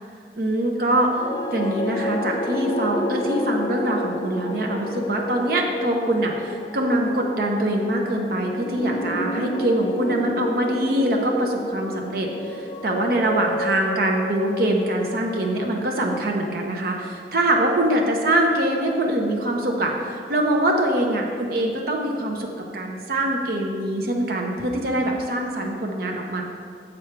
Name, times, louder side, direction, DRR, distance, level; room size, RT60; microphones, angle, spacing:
voice 1, 0.3-26.4, right 1 dB, 55° right, 1 dB, 0.7 m, -23 dB
sound 1, 1.1-17.4, left 1 dB, 25° left, 0.4 m, -30 dB
7.3 x 6.3 x 4.5 m, 2.3 s
head